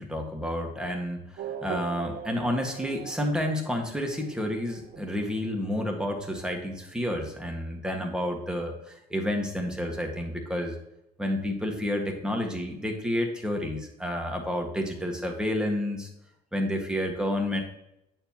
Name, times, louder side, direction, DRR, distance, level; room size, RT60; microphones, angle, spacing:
voice 1, 0.0-10.8 11.2-16.1 16.5-17.6, left 1 dB, 5° right, 2 dB, 1.6 m, -30 dB
Race car auto racing / Accelerating revving vroom, 1.4-7.5, right 6 dB, 60° right, 1.3 m, -42 dB
8.9 x 7.0 x 2.9 m, 0.82 s
cardioid pair, 110°, 17 cm